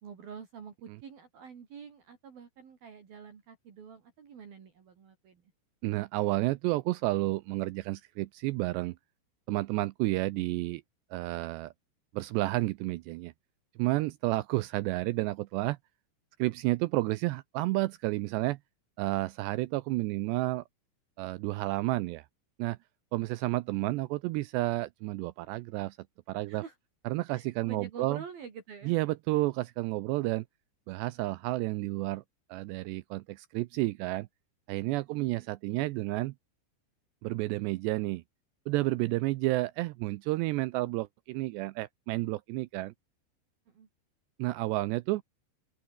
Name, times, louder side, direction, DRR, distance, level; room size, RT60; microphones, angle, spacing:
voice 1, 0.0-5.4 26.5-26.7 27.3-28.9 35.1-35.4 43.7-43.9, right 7 dB, 55° right, 4.7 m, -47 dB
voice 2, 5.8-9.0 9.5-10.8 11.1-11.7 12.1-13.3 13.8-15.8 16.4-18.6 19.0-20.6 21.2-22.3 22.6-22.8 23.1-26.0 26.3-26.6 27.1-28.2 28.9-30.4 30.9-32.2 32.5-34.3 34.7-36.3 37.2-38.2 38.7-42.9 44.4-45.2, right 19 dB, 85° right, 2.6 m, -31 dB
open air
omnidirectional pair, 5.4 m